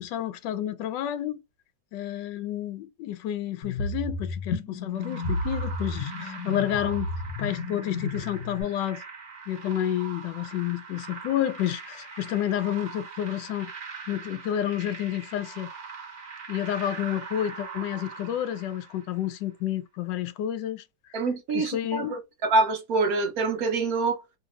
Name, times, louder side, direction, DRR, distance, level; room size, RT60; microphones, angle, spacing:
voice 1, 0.0-1.4 1.9-7.1 7.4-9.0 9.5-13.7 14.1-15.7 16.5-20.8 21.5-22.2, left 11 dB, 80° left, 1.2 m, -30 dB
sound 1, 3.6-8.6, left 2 dB, 65° left, 1.4 m, -32 dB
sound 2, 4.9-19.3, right 5 dB, 35° right, 1.3 m, -42 dB
voice 2, 21.1-24.2, right 3 dB, 65° right, 1.0 m, -25 dB
3.2 x 2.8 x 2.4 m
omnidirectional pair, 1.9 m